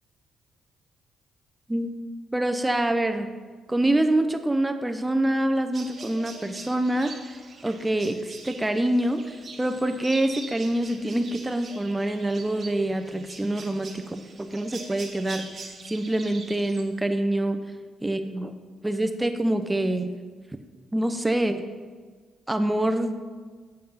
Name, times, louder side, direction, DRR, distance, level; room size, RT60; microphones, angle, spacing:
voice 1, 2.3-3.3 3.7-15.5 15.9-17.6 18.0-18.5 18.8-20.1 20.9-21.6 22.5-23.2, right 1 dB, 10° right, 8 dB, 0.6 m, -26 dB
sound 1, 5.7-16.8, right 4 dB, 40° right, 1.5 m, -43 dB
7.8 x 5.7 x 5.6 m, 1.5 s
cardioid pair, 90°, 0 cm